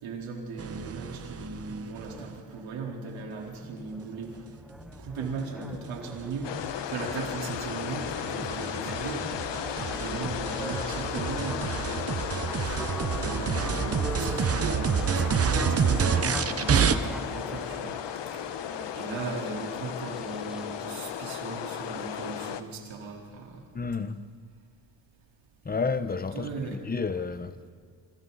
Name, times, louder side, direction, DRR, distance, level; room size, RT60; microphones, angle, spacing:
voice 1, 0.0-4.3 5.0-12.1 12.6-12.8 13.1-17.9 18.9-23.6 26.3-26.8, right 4 dB, 80° right, 4.2 m, -37 dB
sound 1, 0.6-2.4 5.2-16.9, right 7 dB, 30° right, 0.9 m, -29 dB
sound 2, 2.1-20.8, equal, ahead, 0.7 m, -43 dB
sound 3, 6.4-22.6, left 10 dB, 65° left, 1.2 m, -35 dB
voice 2, 23.7-24.2 25.6-27.7, left 4 dB, 20° left, 0.9 m, -31 dB
28.0 x 26.0 x 4.2 m
cardioid pair, 140°, 46 cm